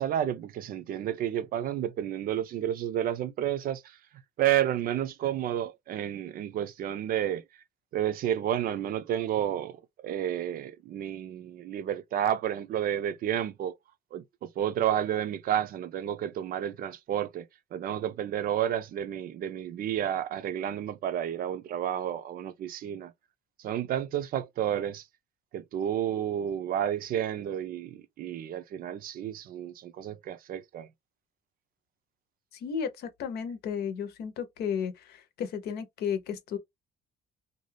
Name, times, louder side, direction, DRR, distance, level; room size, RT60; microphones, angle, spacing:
voice 1, 0.0-4.0 4.4-7.4 7.9-13.7 14.1-17.4 17.7-23.1 23.6-25.1 25.5-30.9, right 10 dB, 60° right, 0.5 m, -31 dB
voice 2, 32.5-36.6, left 7 dB, 70° left, 0.8 m, -33 dB
2.6 x 2.3 x 3.3 m
cardioid pair, 110°, 17 cm